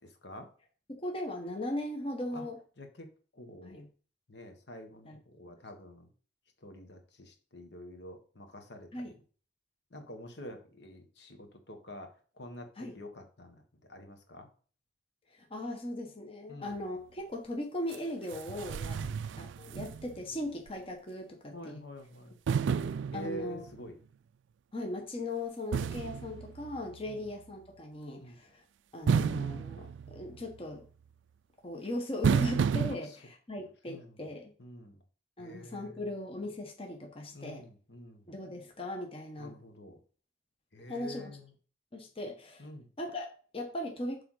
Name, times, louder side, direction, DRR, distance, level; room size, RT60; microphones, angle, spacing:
voice 1, 0.9-2.6 3.6-3.9 5.0-5.2 8.9-9.1 12.8-12.9 15.3-19.0 19.4-21.8 23.1-23.6 24.7-28.6 28.9-30.8 31.6-34.5 35.4-37.6 38.3-39.6 40.9-41.4 41.9-42.7 43.0-44.2, left 1 dB, 30° left, 2 dB, 1.0 m, -38 dB
voice 2, 2.8-3.1 3.3-3.8 4.3-6.1 6.6-9.2 9.9-13.6 13.9-14.5 16.5-16.8 19.0-19.2 21.5-24.0 27.1-27.2 28.2-28.4 32.9-33.2 33.6-34.2 34.6-35.0 35.4-36.0 37.3-38.3 39.4-40.0 40.7-41.5 42.6-42.9, left 1 dB, 65° left, 5 dB, 1.3 m, -47 dB
sound 1, 17.9-18.0 18.3-20.4 20.7-20.8 22.5-23.8 25.7-27.1 29.1-30.6 32.2-33.0, right 6 dB, 85° right, 0.3 m, -31 dB
7.8 x 3.5 x 6.3 m, 0.41 s
head